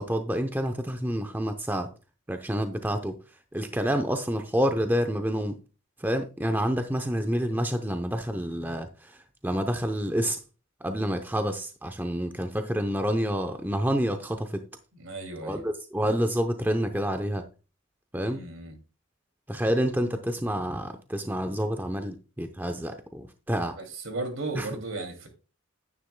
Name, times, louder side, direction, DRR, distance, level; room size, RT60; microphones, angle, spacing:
voice 1, 0.0-1.9 2.3-3.2 3.5-5.6 6.0-10.4 10.8-14.6 15.4-17.4 18.1-18.4 19.5-23.8 24.5-24.7, equal, 10° right, 0.6 m, -28 dB
voice 2, 14.9-15.7 18.1-18.8 23.6-25.3, right 2 dB, 75° right, 2.5 m, -36 dB
10.0 x 9.7 x 2.2 m
head